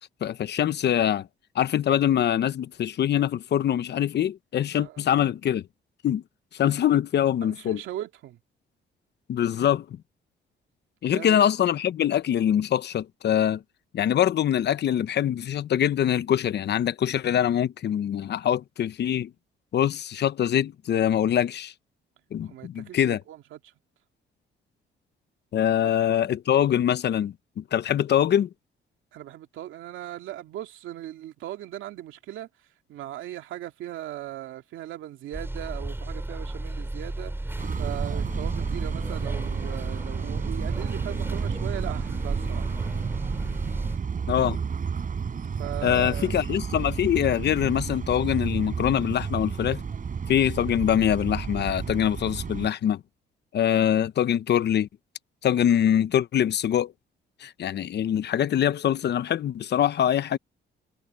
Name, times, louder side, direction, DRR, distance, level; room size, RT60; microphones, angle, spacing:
voice 1, 0.2-1.3 1.5-5.6 6.0-6.2 6.6-7.8 9.3-9.8 11.0-13.6 13.9-19.3 19.7-21.7 22.3-23.2 25.5-28.5 44.3-44.6 45.8-49.8 50.3-53.0 53.5-54.9 55.4-56.9 57.4-60.4, left 10 dB, 60° left, 0.9 m, -24 dB
voice 2, 7.4-8.4 11.1-11.4 22.4-23.7 25.6-25.9 29.1-42.7 45.4-46.3, right 13 dB, 85° right, 2.2 m, -39 dB
sound 1, 35.3-44.0, right 1 dB, 10° right, 7.3 m, -34 dB
sound 2, 37.6-52.7, right 6 dB, 45° right, 4.5 m, -31 dB
cardioid pair, 90°, 20 cm